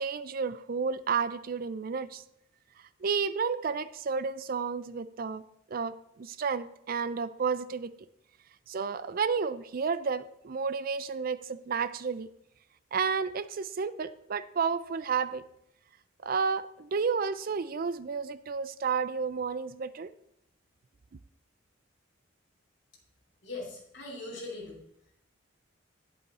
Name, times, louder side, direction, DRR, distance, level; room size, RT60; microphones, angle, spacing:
voice 1, 0.0-2.2 3.0-5.4 5.7-7.9 8.7-12.3 12.9-15.4 16.2-20.1, right 5 dB, 45° right, 14 dB, 0.4 m, -31 dB
voice 2, 23.4-24.8, left 2 dB, 60° left, -5 dB, 2.8 m, -40 dB
9.1 x 8.2 x 4.2 m, 0.76 s
head